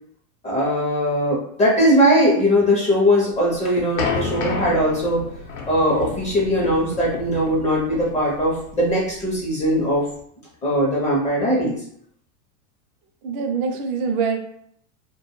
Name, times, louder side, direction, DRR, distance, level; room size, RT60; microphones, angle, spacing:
voice 1, 0.4-5.2 5.7-10.0 10.6-11.8, equal, 15° left, -4 dB, 0.5 m, -20 dB
sound 1, 3.3-10.2, left 4 dB, 75° left, 0.7 m, -31 dB
voice 2, 13.2-14.4, right 5 dB, 45° right, 5 dB, 0.5 m, -24 dB
2.2 x 2.1 x 3.0 m, 0.67 s
supercardioid pair, 135°, 41 cm